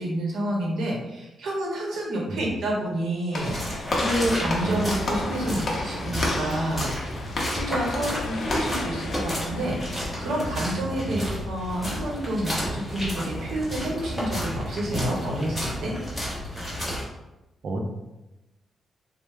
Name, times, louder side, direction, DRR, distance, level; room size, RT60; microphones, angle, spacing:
voice 1, 0.0-6.9 7.5-15.9, right 1 dB, 80° right, -2 dB, 0.8 m, -29 dB
voice 2, 2.3-2.4 4.6-4.9 11.1-11.3 17.6-17.8, right 1 dB, 50° right, 2 dB, 0.4 m, -31 dB
sound 1, 3.3-15.2, left 5 dB, 80° left, 0.3 m, -43 dB
Walk footsteps / Slam, 3.3-8.9, left 2 dB, 40° left, 0.6 m, -31 dB
sound 2, 3.4-17.0, equal, ahead, 0.7 m, -32 dB
3.4 x 2.0 x 3.1 m, 0.99 s
wide cardioid pair, 175°, 0 cm